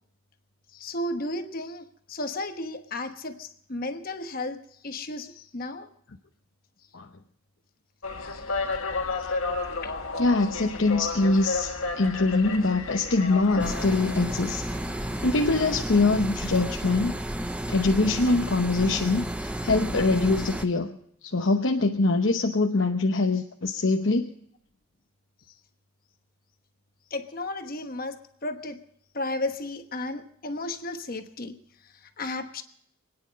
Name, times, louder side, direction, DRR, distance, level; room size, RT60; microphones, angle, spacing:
voice 1, 0.7-5.9 8.3-8.4 9.8-10.0 27.1-28.8 29.1-32.6, left 2 dB, 45° left, 1.2 m, -34 dB
sound 1, 8.0-15.9, left 3 dB, 80° left, 1.8 m, -33 dB
voice 2, 10.2-14.6 15.2-17.1 17.7-21.0 21.2-24.3, left 3 dB, 60° left, 0.9 m, -23 dB
sound 2, 13.6-20.7, right 1 dB, 5° right, 0.6 m, -32 dB
25.5 x 9.9 x 5.2 m
head